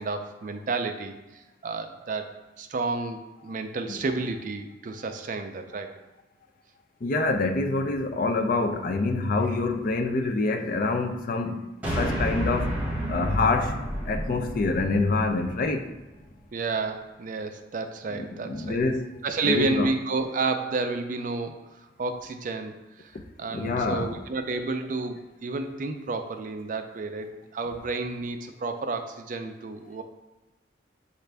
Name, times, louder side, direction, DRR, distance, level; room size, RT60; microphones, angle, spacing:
voice 1, 0.0-5.9 15.6-15.7 16.5-18.8 19.2-23.1 23.4-30.0, right 3 dB, 45° right, 0.4 m, -31 dB
voice 2, 7.0-12.8 13.1-13.8 14.0-15.9 18.5-19.1 19.4-19.9 23.1-23.2 23.5-24.2, left 3 dB, 45° left, 0.4 m, -26 dB
sound 1, 11.8-16.3, equal, 10° right, 0.9 m, -31 dB
6.4 x 2.5 x 3.3 m
head